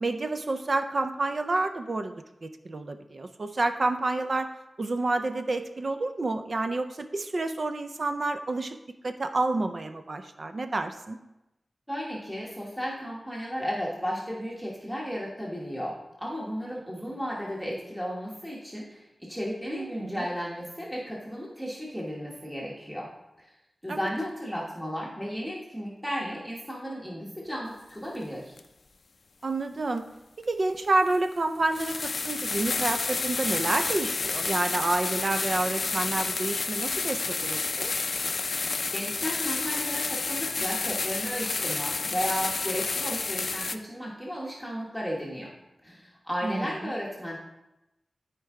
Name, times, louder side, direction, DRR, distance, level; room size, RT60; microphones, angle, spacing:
voice 1, 0.0-2.1 2.4-4.5 4.8-8.8 9.0-11.2 19.7-20.3 23.9-24.0 29.4-30.1 30.5-38.1 46.4-46.7, right 2 dB, 50° right, 8 dB, 0.5 m, -29 dB
voice 2, 11.9-23.1 23.4-23.5 23.8-28.6 38.9-45.5 45.8-47.4, equal, ahead, -4 dB, 1.2 m, -34 dB
sound 1, 28.6-28.7 30.4-30.5 31.1-31.3 31.7-43.8, left 4 dB, 65° left, 0.4 m, -30 dB
12.5 x 4.5 x 3.7 m, 0.93 s
wide cardioid pair, 115°, 0 cm